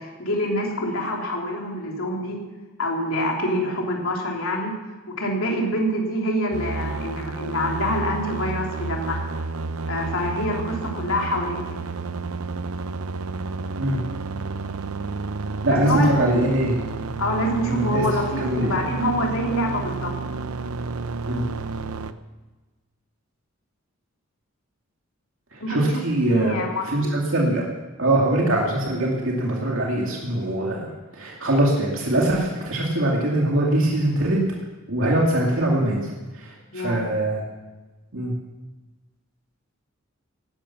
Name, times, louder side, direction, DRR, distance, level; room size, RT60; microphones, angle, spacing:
voice 1, 0.0-2.4 2.8-4.7 5.1-9.3 9.9-11.8 15.8-16.1 17.2-20.1 25.6-27.1 36.7-37.0, equal, 80° left, 0 dB, 3.2 m, -26 dB
sound 1, 6.5-22.1, right 3 dB, 90° right, 0.8 m, -31 dB
voice 2, 15.6-16.8 17.7-18.0 18.4-18.8 21.2-21.4 25.5-26.6 26.9-27.7 28.0-34.4 34.9-37.4 38.1-38.3, right 1 dB, 70° right, -3 dB, 2.5 m, -22 dB
17.5 x 11.5 x 5.9 m, 1.2 s
head